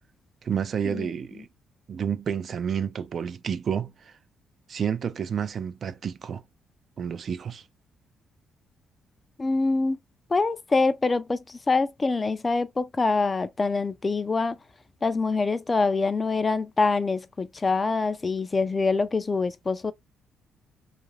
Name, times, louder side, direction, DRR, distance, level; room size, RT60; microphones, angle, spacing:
voice 1, 0.4-1.5 1.9-4.1 4.7-6.4 7.0-7.6, right 7 dB, 50° right, 0.3 m, -30 dB
voice 2, 9.4-10.0 10.3-14.6 15.0-19.9, left 3 dB, 25° left, 0.3 m, -25 dB
2.4 x 2.1 x 3.1 m
cardioid pair, 90°, 0 cm